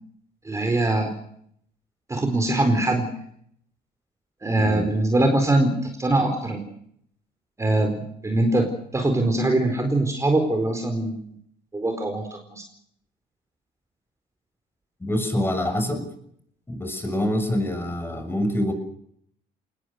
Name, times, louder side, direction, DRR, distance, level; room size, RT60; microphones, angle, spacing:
voice 1, 0.4-1.1 2.1-3.1 4.4-6.6 7.6-11.2 11.7-12.7, right 2 dB, 15° right, 4 dB, 4.3 m, -22 dB
voice 2, 15.0-16.0 16.7-18.7, left 1 dB, 15° left, 7 dB, 6.7 m, -25 dB
25.5 x 20.5 x 6.6 m, 0.67 s
cardioid pair, 110°, 17 cm